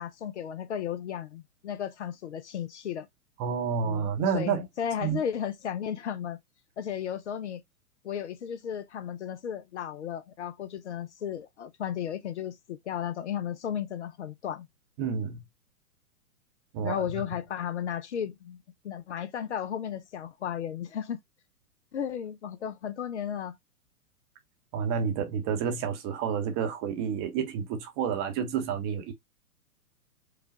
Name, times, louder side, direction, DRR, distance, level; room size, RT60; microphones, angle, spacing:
voice 1, 0.0-3.1 3.8-4.1 4.3-6.4 6.8-7.6 8.0-14.7 16.8-21.2 21.9-23.6, left 9 dB, 50° left, 0.6 m, -34 dB
voice 2, 3.4-4.6 5.0-5.2 15.0-15.4 16.7-17.2 24.7-29.1, right 7 dB, 25° right, 0.9 m, -29 dB
4.8 x 2.3 x 2.8 m
figure-of-eight pair, 115°, 46 cm